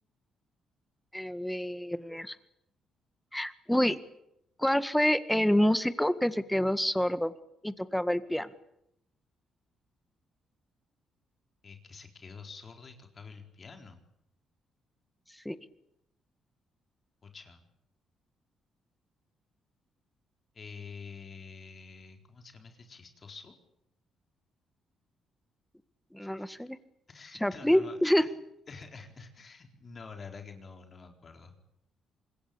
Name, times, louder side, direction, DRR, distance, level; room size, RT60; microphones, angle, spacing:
voice 1, 1.1-2.4 3.3-4.0 4.6-7.3 7.6-8.5 15.3-15.6 26.1-26.8 27.4-28.2, equal, 5° left, 13 dB, 1.8 m, -27 dB
voice 2, 11.6-14.0 17.2-17.6 20.5-23.5 26.2-26.3 27.1-28.3 28.7-31.6, left 5 dB, 40° left, 5 dB, 4.2 m, -48 dB
26.0 x 22.0 x 8.8 m, 0.80 s
cardioid pair, 90°, 0 cm